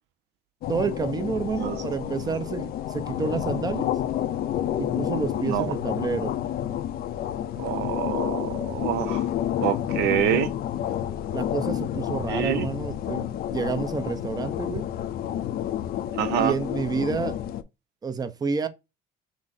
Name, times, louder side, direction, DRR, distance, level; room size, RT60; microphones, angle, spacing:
sound 1, 0.6-17.6, left 11 dB, 60° left, 0.5 m, -29 dB
voice 1, 0.7-3.9 4.8-6.3 11.3-13.2 13.5-14.8 16.4-17.4 18.0-18.7, right 5 dB, 25° right, 0.6 m, -29 dB
voice 2, 1.5-2.4 5.5-5.7 7.6-9.3 9.6-10.5 12.3-12.7 16.1-16.5, right 10 dB, 80° right, 0.6 m, -27 dB
6.0 x 2.0 x 4.1 m
cardioid pair, 110°, 17 cm